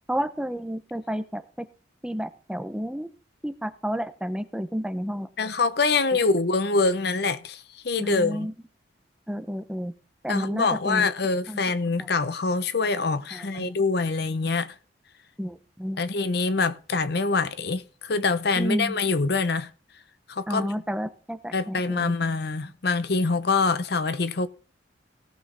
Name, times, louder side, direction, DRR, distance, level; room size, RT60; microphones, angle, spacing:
voice 1, 0.1-1.7 2.0-3.1 3.4-5.3 6.1-6.2 8.0-8.5 9.3-9.9 10.2-11.1 11.5-11.6 12.0-12.1 13.3-13.7 15.4-16.0 18.6-19.0 20.5-22.1, equal, 5° right, 0.7 m, -31 dB
voice 2, 5.4-8.5 10.3-14.7 16.0-19.7 20.3-20.7 21.5-24.5, left 4 dB, 60° left, 0.8 m, -25 dB
17.5 x 6.2 x 3.7 m
head